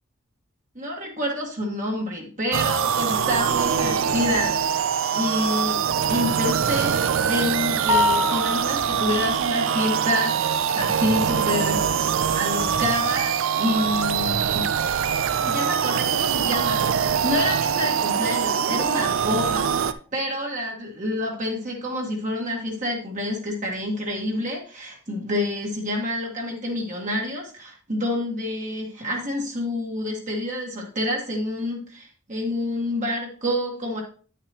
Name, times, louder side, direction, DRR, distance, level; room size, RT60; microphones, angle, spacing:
voice 1, 0.7-4.8 5.1-5.8 6.1-14.7 15.4-34.0, left 1 dB, 35° right, -1 dB, 1.6 m, -28 dB
sound 1, 2.5-19.9, right 7 dB, 65° right, 0.4 m, -23 dB
sound 2, 7.9-8.9, left 3 dB, 20° right, 0.7 m, -23 dB
9.9 x 6.7 x 2.9 m, 0.39 s
head